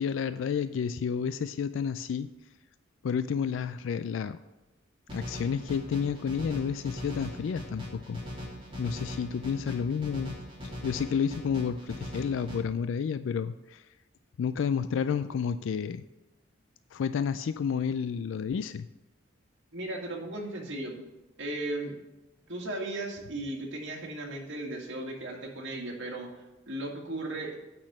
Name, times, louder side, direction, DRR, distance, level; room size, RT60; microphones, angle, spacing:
voice 1, 0.0-2.3 3.0-4.4 5.1-8.2 8.8-10.3 10.8-13.8 14.4-16.0 16.9-18.9, left 6 dB, 70° left, 12 dB, 0.3 m, -30 dB
sound 1, 5.1-12.6, left 1 dB, 30° right, 2.7 m, -40 dB
voice 2, 19.7-21.0 21.4-22.0 22.5-27.5, right 2 dB, 65° right, 0 dB, 2.0 m, -36 dB
8.6 x 6.0 x 6.0 m, 1.0 s
head